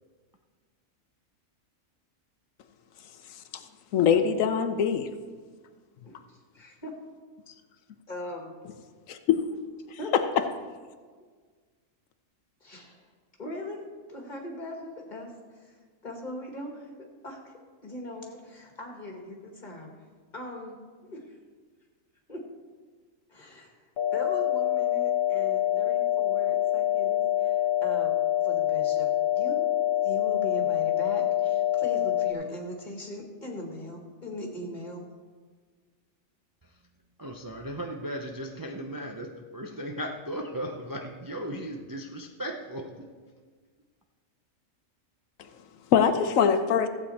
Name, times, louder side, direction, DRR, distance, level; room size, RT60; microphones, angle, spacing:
voice 1, 3.9-5.1 9.1-9.4 10.1-10.2 45.9-46.9, left 7 dB, 85° left, 9 dB, 1.1 m, -22 dB
voice 2, 6.0-6.9 8.1-8.5 10.0-10.1 12.6-13.0 13.4-15.3 15.6-15.7 16.0-16.9 17.2-17.5 17.8-19.9 20.3-20.8 21.1-21.4 22.3-22.5 23.3-23.8 24.1-28.2 28.4-29.7 30.0-35.1, left 1 dB, 35° left, 1 dB, 1.9 m, -40 dB
sound 1, 24.0-32.3, left 12 dB, 55° left, 1.0 m, -26 dB
voice 3, 37.2-43.1, equal, 25° right, 2 dB, 0.5 m, -36 dB
14.5 x 8.2 x 4.3 m, 1.5 s
omnidirectional pair, 1.3 m